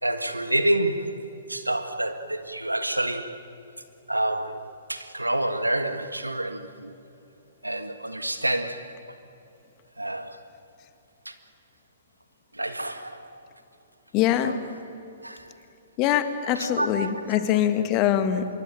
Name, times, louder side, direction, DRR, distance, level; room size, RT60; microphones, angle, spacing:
voice 1, 0.0-3.4 4.1-6.9 7.6-9.0 10.0-10.4 11.2-11.3 12.5-13.4 14.4-14.6 15.2-15.5 16.5-17.4, right 1 dB, 85° right, 1.7 m, -28 dB
voice 2, 14.1-14.6 16.0-18.5, left 11 dB, 30° left, 1.9 m, -23 dB
25.5 x 22.5 x 9.0 m
figure-of-eight pair, 115°, 0 cm